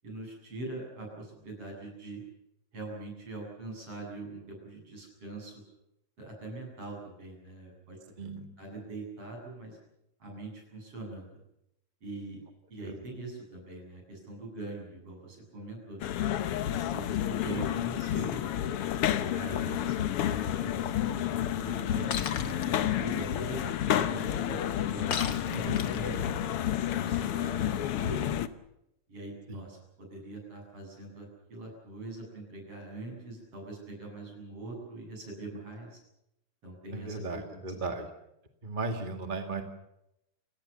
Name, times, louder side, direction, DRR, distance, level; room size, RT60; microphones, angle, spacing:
voice 1, 0.0-2.2 2.7-5.5 6.2-8.3 8.6-9.8 10.2-11.3 12.0-12.4 12.7-16.0 16.8-18.8 19.3-20.0 20.2-25.1 25.5-26.7 27.0-28.3 29.1-36.0 36.6-37.6, right 2 dB, 40° right, 0 dB, 9.2 m, -43 dB
sound 1, 16.0-28.5, left 11 dB, 90° left, 1.2 m, -30 dB
Shatter, 22.1-22.7 25.1-26.1, left 7 dB, 55° left, 1.3 m, -34 dB
voice 2, 25.5-25.9 29.5-29.6 36.9-38.1 38.6-39.6, right 3 dB, 20° right, 5 dB, 1.3 m, -36 dB
29.0 x 18.0 x 7.1 m, 0.83 s
omnidirectional pair, 4.0 m